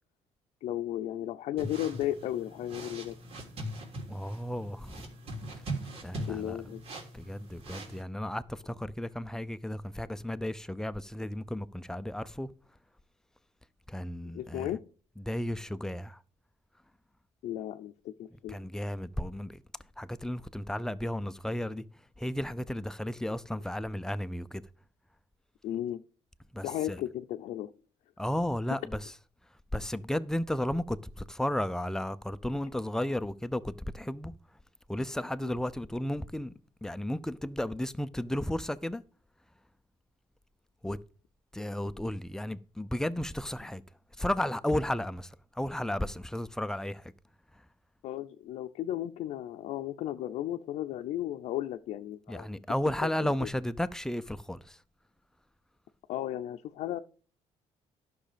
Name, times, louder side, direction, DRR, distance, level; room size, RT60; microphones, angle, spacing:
voice 1, 0.6-3.2 6.3-6.8 14.3-14.8 17.4-18.6 25.6-26.0 26.6-27.7 35.4-35.6 48.0-52.5 53.2-53.5 56.1-57.0, left 12 dB, 75° left, 0.6 m, -35 dB
sound 1, 1.6-8.0, right 1 dB, 60° right, 3.2 m, -41 dB
voice 2, 4.1-5.1 5.5-5.6 6.0-6.6 7.1-12.5 13.9-14.7 15.2-16.2 18.5-19.6 20.0-21.8 22.2-24.6 26.5-27.0 28.2-29.1 29.7-34.3 34.9-36.5 36.8-39.0 40.8-41.0 41.5-43.8 44.2-47.1 52.3-54.8, left 1 dB, 5° left, 0.6 m, -33 dB
11.5 x 6.3 x 5.1 m
cardioid pair, 100°, 11 cm